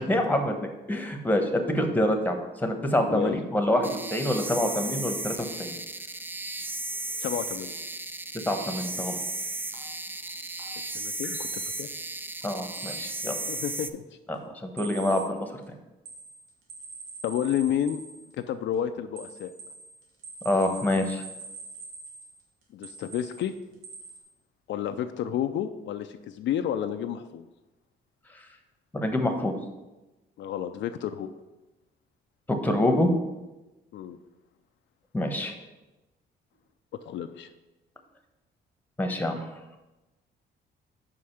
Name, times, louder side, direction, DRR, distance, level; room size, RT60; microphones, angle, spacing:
voice 1, 0.0-2.4 2.6-5.7 8.5-9.2 12.4-13.3 14.3-15.5 20.4-21.2 28.9-29.5 32.6-33.1 35.1-35.5 39.0-39.4, left 1 dB, 10° left, 4 dB, 1.0 m, -26 dB
voice 2, 3.1-3.4 7.2-7.7 10.9-11.9 13.5-14.0 17.2-18.0 18.4-19.5 22.7-23.5 24.7-27.5 30.4-31.3 33.9-34.2 37.0-37.5, left 10 dB, 70° left, 8 dB, 0.4 m, -30 dB
sound 1, 3.8-13.9, right 2 dB, 10° right, 0.3 m, -35 dB
sound 2, 7.7-8.0 8.9-9.0 9.2-11.9 12.2-13.8 14.8-15.3 16.1-18.3 19.2-22.4 22.8-23.5 23.8-24.2, right 4 dB, 85° right, 1.3 m, -44 dB
5.2 x 4.9 x 5.8 m, 1.1 s
cardioid pair, 90°, 20 cm